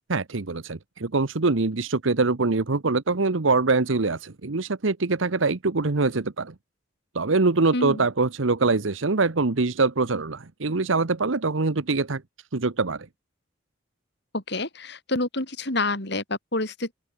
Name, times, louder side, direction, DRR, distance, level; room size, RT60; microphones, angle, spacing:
voice 1, 0.1-6.5 7.1-12.2 12.5-13.1, right 3 dB, 80° right, 1.0 m, -24 dB
voice 2, 7.7-8.0 14.3-16.9, left 2 dB, 60° left, 4.7 m, -28 dB
open air
head